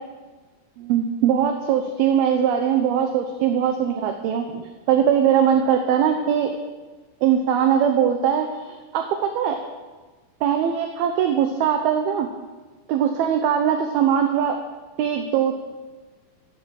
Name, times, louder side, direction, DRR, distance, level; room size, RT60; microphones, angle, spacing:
voice 1, 0.8-6.5 7.2-9.6 10.4-12.3 12.9-14.6 15.0-15.6, right 8 dB, 75° right, 5 dB, 2.4 m, -21 dB
15.5 x 12.0 x 6.5 m, 1.3 s
omnidirectional pair, 5.4 m